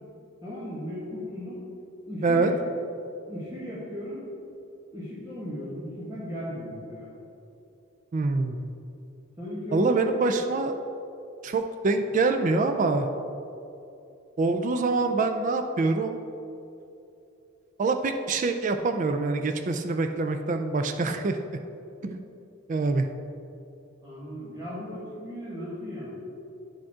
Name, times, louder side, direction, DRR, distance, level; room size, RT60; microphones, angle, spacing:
voice 1, 0.4-1.6 2.1-2.5 3.3-4.2 4.9-7.1 9.4-10.3 24.0-26.2, left 1 dB, 20° right, -10 dB, 1.4 m, -36 dB
voice 2, 8.1-8.7 9.7-10.8 11.4-13.1 14.4-16.2 17.8-21.4 22.0-22.2 22.7-23.1, right 3 dB, 40° right, 6 dB, 0.3 m, -25 dB
10.0 x 5.1 x 3.6 m, 2.8 s
head